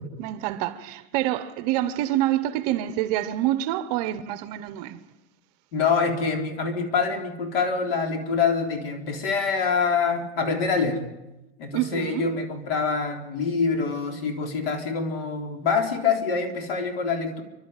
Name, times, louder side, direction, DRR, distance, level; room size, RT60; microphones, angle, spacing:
voice 1, 0.2-5.0 11.7-12.3, right 13 dB, 35° right, 0.9 m, -27 dB
voice 2, 5.7-11.0 11.6-17.4, left 5 dB, 60° left, 3.8 m, -25 dB
29.0 x 12.0 x 9.0 m
supercardioid pair, 165°, 33 cm